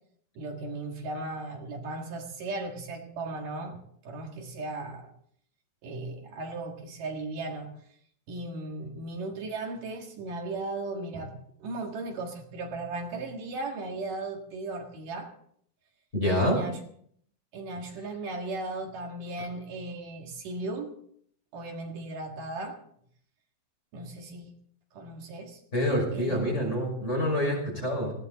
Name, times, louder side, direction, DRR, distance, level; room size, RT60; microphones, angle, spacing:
voice 1, 0.4-5.1 5.8-7.7 8.3-15.3 16.4-16.8 17.5-21.0 21.5-22.8 23.9-24.5 24.9-25.6 26.1-26.4, right 2 dB, 70° right, 2 dB, 3.3 m, -36 dB
voice 2, 16.1-16.6 25.7-28.1, equal, 20° left, 0 dB, 5.8 m, -26 dB
18.5 x 16.5 x 4.0 m, 0.64 s
omnidirectional pair, 4.1 m